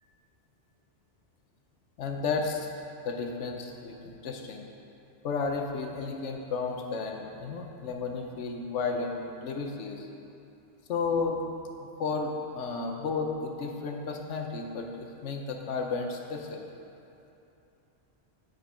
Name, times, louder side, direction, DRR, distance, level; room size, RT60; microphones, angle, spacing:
voice 1, 2.0-2.7 3.0-4.6 5.2-10.1 10.9-11.4 12.0-16.7, left 4 dB, 90° left, 3 dB, 1.1 m, -33 dB
8.0 x 5.2 x 4.9 m, 2.9 s
omnidirectional pair, 1.2 m